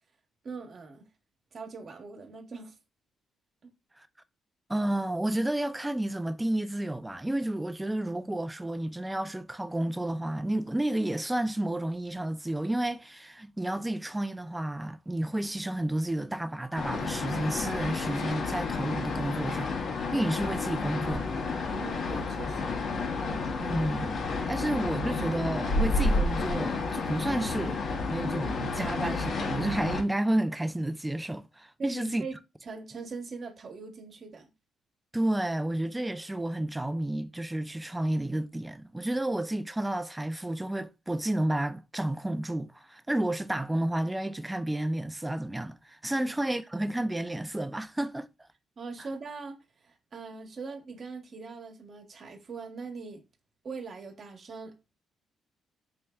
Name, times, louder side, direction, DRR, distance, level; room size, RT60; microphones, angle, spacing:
voice 1, 0.4-1.0 1.5-2.7 3.6-3.7 21.8-22.8 31.8-32.4 32.6-34.5 46.2-46.3 48.8-53.2 53.6-54.7, right 4 dB, 45° right, 1.0 m, -41 dB
voice 2, 4.7-19.7 20.1-21.4 23.6-32.2 35.1-48.3, right 1 dB, 10° right, 0.3 m, -31 dB
sound 1, 16.8-30.0, left 3 dB, 60° left, 0.8 m, -31 dB
4.4 x 3.2 x 2.3 m
cardioid pair, 90°, 0 cm